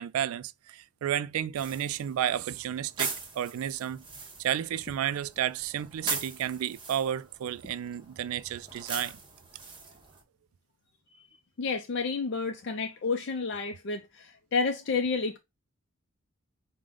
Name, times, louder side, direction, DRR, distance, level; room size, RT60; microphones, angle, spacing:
voice 1, 0.0-4.0 4.4-9.2, right 10 dB, 85° right, 0.3 m, -32 dB
sound 1, 1.6-10.2, right 3 dB, 20° right, 0.8 m, -40 dB
voice 2, 11.6-15.4, left 4 dB, 55° left, 0.4 m, -30 dB
5.0 x 2.1 x 3.6 m
head